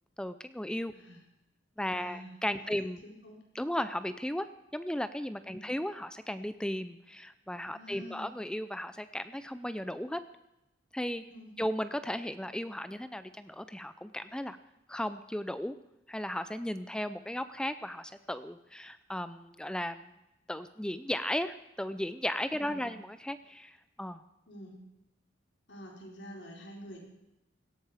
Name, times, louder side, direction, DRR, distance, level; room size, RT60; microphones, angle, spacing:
voice 1, 0.2-0.9 1.8-3.0 3.5-4.5 4.7-10.2 10.9-11.2 11.6-14.6 14.9-15.8 16.1-20.1 20.5-24.2, left 1 dB, 5° left, 12 dB, 0.5 m, -35 dB
voice 2, 1.9-2.3 2.6-3.4 5.5-5.7 7.7-8.3 11.3-11.5 22.6-22.9 24.5-24.8 25.7-27.0, equal, 80° left, 0 dB, 4.4 m, -48 dB
18.0 x 16.0 x 5.0 m, 0.90 s
head